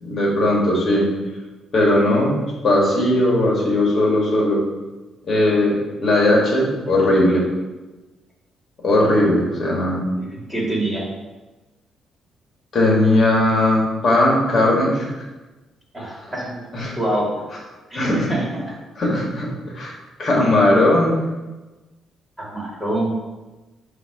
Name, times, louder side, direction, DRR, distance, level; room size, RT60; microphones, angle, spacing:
voice 1, 0.0-1.1 1.7-4.6 5.3-7.5 8.8-10.1 12.7-15.1 16.7-16.9 17.9-18.3 19.0-19.9 20.2-21.2, left 1 dB, 40° left, -3 dB, 1.9 m, -18 dB
voice 2, 10.3-11.0 15.9-17.2 17.9-18.4 22.4-23.1, right 1 dB, 10° right, -4 dB, 2.1 m, -25 dB
7.8 x 2.8 x 6.1 m, 1.1 s
cardioid pair, 140°, 0 cm